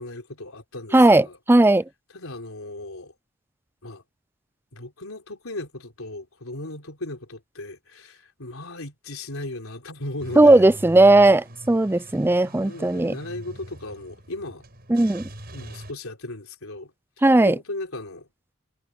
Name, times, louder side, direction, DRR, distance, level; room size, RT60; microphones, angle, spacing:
voice 1, 0.0-1.4 2.1-3.1 3.8-4.0 4.7-10.7 12.7-14.6 15.5-16.9 17.4-18.3, left 2 dB, 80° left, 3.9 m, -36 dB
voice 2, 0.9-1.8 10.4-13.2 14.9-15.3 17.2-17.6, right 2 dB, 10° right, 0.4 m, -16 dB
Car / Engine starting / Idling, 10.2-15.9, right 1 dB, 45° right, 6.8 m, -42 dB
head